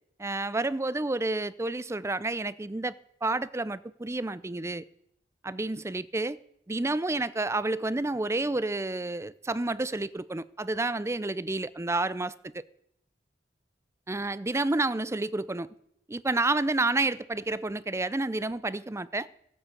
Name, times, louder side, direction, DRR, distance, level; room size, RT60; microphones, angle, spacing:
voice 1, 0.2-2.9 3.2-4.8 5.4-6.4 6.7-12.6 14.1-15.7 16.1-19.3, right 2 dB, 15° right, 0.5 m, -30 dB
16.5 x 8.7 x 8.3 m
head